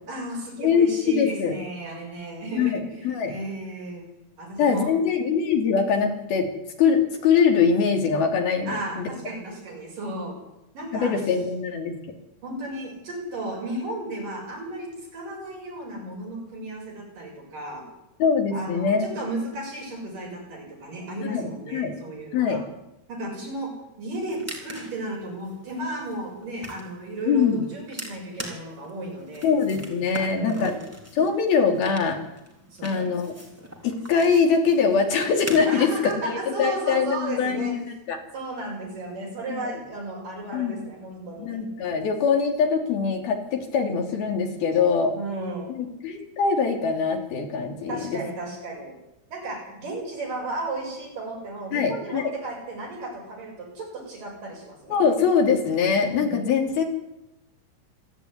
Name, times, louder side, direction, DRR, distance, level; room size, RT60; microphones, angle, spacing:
voice 1, 0.1-4.0 4.4-4.9 8.7-10.4 10.7-11.1 12.4-17.9 18.5-22.6 23.1-29.5 30.2-30.7 32.7-33.1 35.6-37.8 38.3-41.6 45.1-45.7 47.9-48.9 49.3-55.0 56.1-56.5, right 2 dB, 55° right, -1 dB, 8.4 m, -34 dB
voice 2, 0.6-1.5 2.6-3.3 4.6-6.5 6.8-9.1 11.0-11.9 18.2-19.3 21.3-21.9 22.3-22.6 27.3-27.6 29.4-30.7 31.1-32.2 32.8-33.3 33.8-35.9 36.2-38.2 39.5-39.7 40.5-40.8 41.4-45.2 45.7-48.2 51.7-52.3 54.9-56.8, left 6 dB, 70° left, 3 dB, 4.6 m, -23 dB
sound 1, 24.1-36.1, equal, 5° right, 3.2 m, -42 dB
27.5 x 11.0 x 9.7 m, 0.91 s
omnidirectional pair, 4.5 m